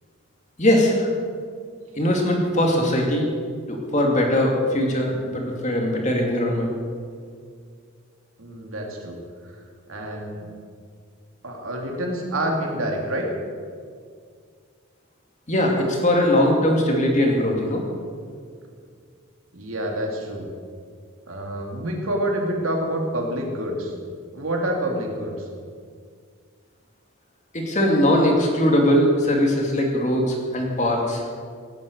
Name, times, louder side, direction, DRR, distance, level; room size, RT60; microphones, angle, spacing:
voice 1, 0.6-1.1 2.0-3.3 3.7-6.7 15.5-17.8 27.5-31.2, left 1 dB, 35° left, 0 dB, 2.6 m, -20 dB
voice 2, 8.4-9.2 9.4-9.5 9.9-10.5 11.4-13.3 19.5-20.5 21.3-23.9 24.3-25.5, right 1 dB, 75° right, 1 dB, 2.8 m, -27 dB
18.0 x 8.6 x 8.1 m, 2.1 s
head